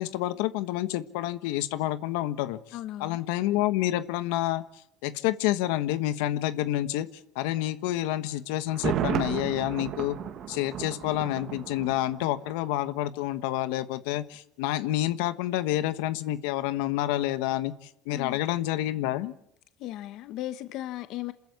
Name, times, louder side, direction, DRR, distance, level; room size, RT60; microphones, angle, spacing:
voice 1, 0.0-2.6 3.0-4.6 5.0-7.1 7.3-10.2 10.5-19.3, left 14 dB, 80° left, 1.3 m, -28 dB
voice 2, 2.7-3.2 18.1-18.4 19.8-21.3, left 14 dB, 55° left, 1.1 m, -36 dB
Thunder, 8.7-12.6 12.9-13.0, right 9 dB, 45° right, 1.9 m, -33 dB
28.0 x 14.0 x 8.3 m
cardioid pair, 150°, 0 cm